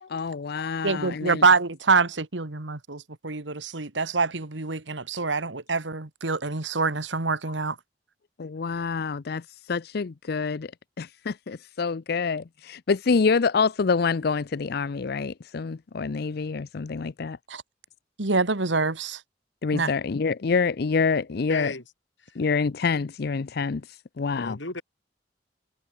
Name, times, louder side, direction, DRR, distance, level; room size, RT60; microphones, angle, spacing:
voice 1, 0.0-1.4 8.4-10.7 11.0-17.4 19.6-21.7 22.4-24.6, left 5 dB, 60° left, 0.5 m, -27 dB
voice 2, 0.8-7.8 17.5-17.6 18.2-19.2 19.7-19.9, right 4 dB, 90° right, 1.9 m, -25 dB
voice 3, 21.3-21.8 22.2-22.4 24.4-24.8, left 3 dB, 90° left, 6.1 m, -35 dB
head